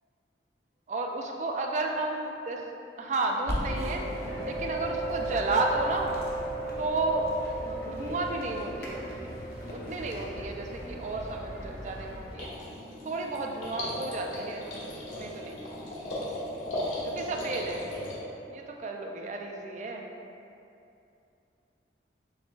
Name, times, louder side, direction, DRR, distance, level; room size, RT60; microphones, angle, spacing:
voice 1, 0.9-2.6 3.0-4.0 4.4-6.1 6.8-7.3 7.6-9.4 9.7-12.5 13.1-14.7 15.2-15.6 17.0-17.9 18.5-20.1, right 3 dB, 40° right, 2 dB, 0.3 m, -32 dB
sound 1, 3.2-12.6, right 2 dB, 15° left, 0.7 m, -38 dB
sound 2, 3.5-12.4, equal, 55° left, 0.7 m, -39 dB
sound 3, 12.4-18.2, left 1 dB, 85° left, 1.2 m, -37 dB
5.5 x 3.4 x 2.2 m, 2.7 s
head